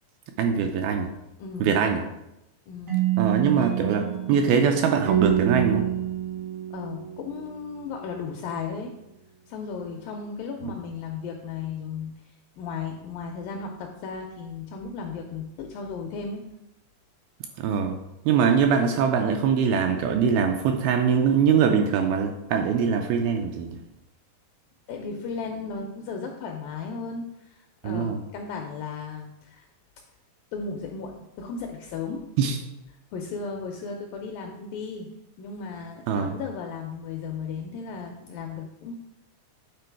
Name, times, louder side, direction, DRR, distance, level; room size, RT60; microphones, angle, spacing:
voice 1, 0.4-1.1 1.6-2.0 3.2-5.9 10.6-10.7 17.6-18.0 18.3-23.8 27.8-28.2 32.4-32.6 36.1-36.4, right 6 dB, 80° right, 4 dB, 2.2 m, -23 dB
voice 2, 1.4-1.7 2.7-3.0 6.7-8.9 9.5-12.1 12.6-16.4 24.9-29.7 30.5-32.3 33.1-35.1 35.4-39.0, left 5 dB, 85° left, 2 dB, 2.0 m, -35 dB
sound 1, 2.9-7.8, right 11 dB, 55° right, 0.9 m, -27 dB
8.9 x 3.8 x 4.5 m, 0.89 s
omnidirectional pair, 4.6 m